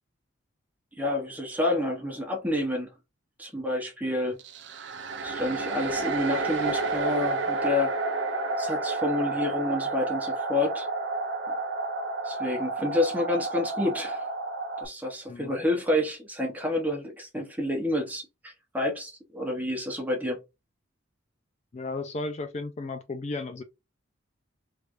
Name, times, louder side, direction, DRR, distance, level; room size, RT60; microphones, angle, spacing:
voice 1, 1.0-2.9 3.4-4.4 5.2-8.1 8.6-10.9 11.5-11.6 12.2-14.3 14.8-20.4, left 1 dB, 10° right, 1.0 m, -29 dB
sound 1, 4.4-14.9, right 3 dB, 65° right, 0.6 m, -30 dB
voice 2, 21.7-23.6, left 3 dB, 35° left, 0.3 m, -34 dB
3.2 x 3.2 x 2.5 m
head